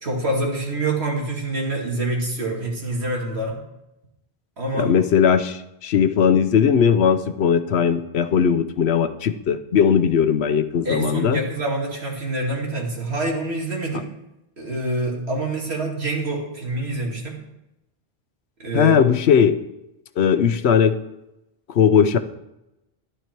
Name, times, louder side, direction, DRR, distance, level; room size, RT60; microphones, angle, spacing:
voice 1, 0.0-3.5 4.6-4.9 10.8-14.1 14.6-17.4 18.6-19.0, right 2 dB, 85° right, -2 dB, 2.8 m, -26 dB
voice 2, 4.8-11.4 13.9-14.0 18.7-19.6 20.2-21.0 21.7-22.2, left 7 dB, 85° left, 11 dB, 1.0 m, -18 dB
11.5 x 9.9 x 4.5 m, 0.91 s
omnidirectional pair, 1.0 m